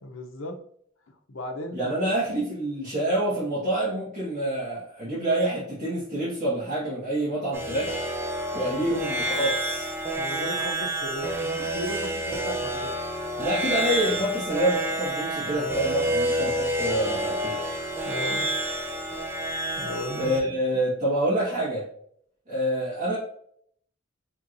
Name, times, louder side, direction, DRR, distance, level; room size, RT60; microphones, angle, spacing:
voice 1, 0.0-0.6 1.3-2.1 8.6-8.9 10.2-12.9 15.4-15.9 18.0-18.5 19.7-20.6, left 1 dB, 75° left, 5 dB, 0.7 m, -36 dB
voice 2, 1.7-8.0 8.5-9.9 13.4-17.6 20.1-21.8 22.5-23.2, right 1 dB, 40° right, -9 dB, 1.5 m, -27 dB
sound 1, 7.5-20.4, right 1 dB, 10° right, 0.5 m, -29 dB
4.4 x 3.5 x 2.6 m, 0.66 s
head